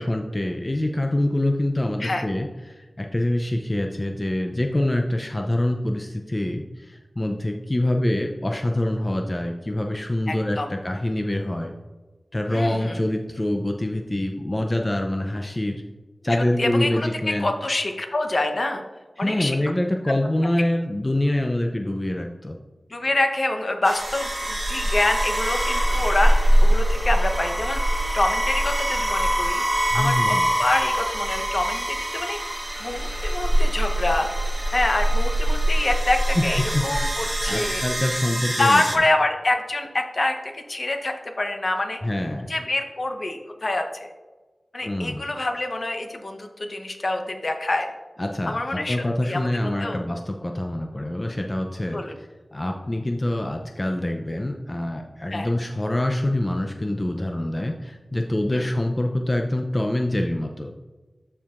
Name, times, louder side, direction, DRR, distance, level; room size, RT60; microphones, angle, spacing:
voice 1, 0.0-11.7 12.3-15.8 16.2-17.5 19.2-22.6 29.9-30.5 36.4-36.5 36.7-38.8 42.0-42.5 44.8-45.2 48.2-52.0 52.5-60.7, left 1 dB, 25° left, 3 dB, 0.5 m, -25 dB
voice 2, 10.3-10.7 12.5-13.0 16.3-18.8 19.2-19.6 22.9-29.6 29.9-34.3 34.7-37.8 38.6-42.0 42.5-44.1 44.7-47.9 48.4-50.0 51.9-52.1 55.3-55.5 58.5-58.7, left 2 dB, 55° left, 4 dB, 0.8 m, -26 dB
sound 1, 23.8-39.0, right 1 dB, 25° right, 1.0 m, -23 dB
12.5 x 4.5 x 2.5 m, 1.2 s
wide cardioid pair, 65°, 0 cm